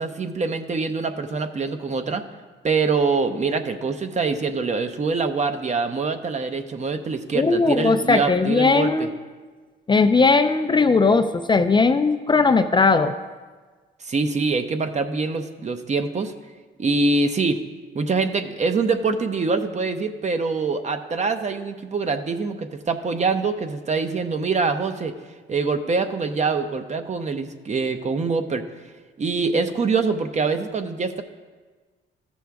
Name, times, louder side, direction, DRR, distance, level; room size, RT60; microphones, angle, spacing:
voice 1, 0.0-2.2 2.6-9.1 14.0-16.3 16.8-17.6 17.9-25.1 25.5-28.7 29.2-31.2, right 4 dB, 35° right, 8 dB, 0.7 m, -24 dB
voice 2, 7.3-9.1 9.9-13.1, left 4 dB, 25° left, 8 dB, 0.4 m, -18 dB
14.5 x 6.2 x 3.5 m, 1.4 s
cardioid pair, 90°, 20 cm